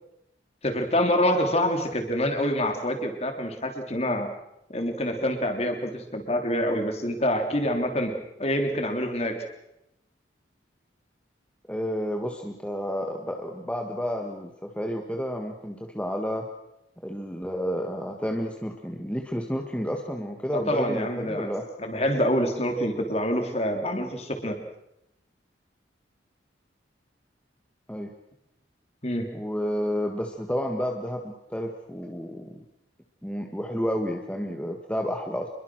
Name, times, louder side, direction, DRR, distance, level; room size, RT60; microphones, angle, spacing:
voice 1, 0.6-4.3 4.7-8.1 8.4-9.4 20.5-21.5 21.8-24.6 29.0-29.3, equal, 35° left, 5 dB, 3.5 m, -26 dB
voice 2, 11.7-16.5 17.0-21.7 27.9-28.1 29.3-32.6 33.2-35.5, equal, 5° left, 2 dB, 1.6 m, -31 dB
27.0 x 22.0 x 6.3 m, 0.85 s
head